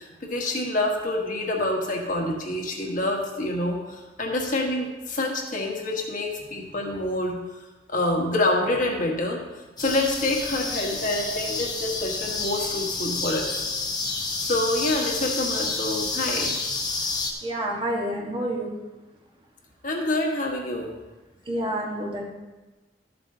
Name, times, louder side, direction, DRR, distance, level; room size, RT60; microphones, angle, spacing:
voice 1, 0.0-7.4 7.9-9.4 9.8-13.5 14.4-16.6 19.8-20.9, left 1 dB, 45° left, 0 dB, 1.4 m, -27 dB
sound 1, 9.8-17.3, left 3 dB, 20° left, 1.0 m, -29 dB
voice 2, 17.4-18.7 21.4-22.2, right 1 dB, 25° right, -2 dB, 1.4 m, -28 dB
13.5 x 7.7 x 2.8 m, 1.2 s
head